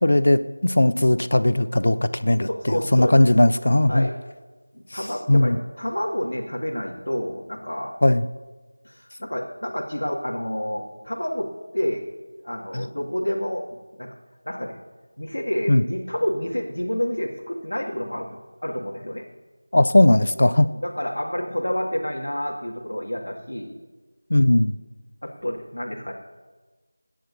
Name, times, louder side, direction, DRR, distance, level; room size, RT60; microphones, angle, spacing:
voice 1, 0.0-4.1 4.9-5.6 8.0-8.2 12.7-12.9 15.7-15.8 19.7-20.7 24.3-24.7, left 1 dB, 60° left, 13 dB, 0.7 m, -18 dB
voice 2, 2.5-3.1 3.9-4.1 4.7-8.0 8.8-12.0 12.4-14.1 14.5-14.8 15.2-19.3 20.6-23.8 25.2-26.1, equal, 85° left, -3 dB, 2.2 m, -29 dB
29.5 x 10.5 x 2.7 m, 1.3 s
figure-of-eight pair, 170°, 0 cm